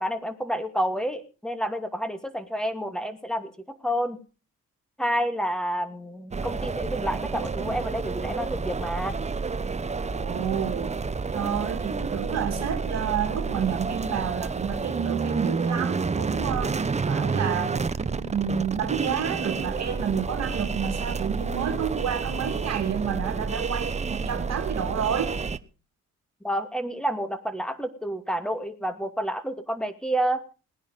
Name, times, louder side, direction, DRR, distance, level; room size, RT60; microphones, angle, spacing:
voice 1, 0.0-3.5 3.8-4.2 5.0-9.2 26.4-30.4, equal, ahead, 9 dB, 2.5 m, -29 dB
sound 1, 6.3-25.6, right 4 dB, 25° right, 0.9 m, -29 dB
voice 2, 10.1-10.9 11.3-25.3, right 8 dB, 60° right, 4 dB, 2.3 m, -30 dB
19.5 x 10.0 x 5.4 m, 0.36 s
cardioid pair, 90°, 30 cm